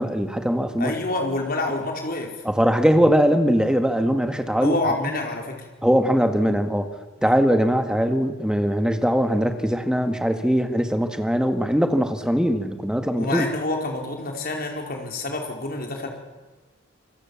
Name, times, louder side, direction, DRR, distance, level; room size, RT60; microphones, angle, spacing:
voice 1, 0.0-0.9 2.4-4.8 5.8-6.9 7.2-13.5, equal, 5° right, 7 dB, 1.7 m, -21 dB
voice 2, 0.8-2.3 4.6-5.7 7.2-7.3 13.2-16.1, left 2 dB, 50° left, 1 dB, 4.8 m, -27 dB
26.5 x 22.0 x 7.2 m, 1.2 s
head